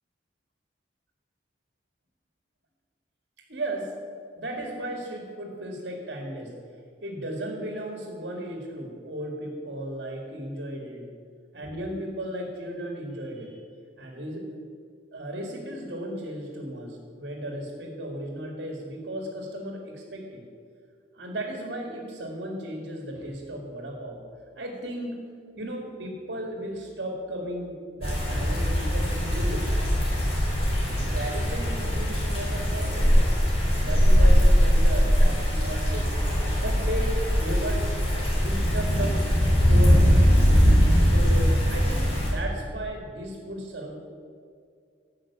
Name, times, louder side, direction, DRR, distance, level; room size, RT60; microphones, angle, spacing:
voice 1, 3.5-3.9 4.3-6.5 7.0-11.1 11.5-13.6 14.0-14.4 15.1-20.4 21.1-24.2 24.6-25.2 25.6-29.9 30.8-33.2 33.6-36.1 36.6-37.8 38.3-39.2 39.7-40.4 41.0-43.9, right 1 dB, 70° right, 1 dB, 2.1 m, -35 dB
sound 1, 28.0-42.3, equal, 30° left, 3.1 m, -21 dB
13.5 x 6.3 x 8.6 m, 2.2 s
head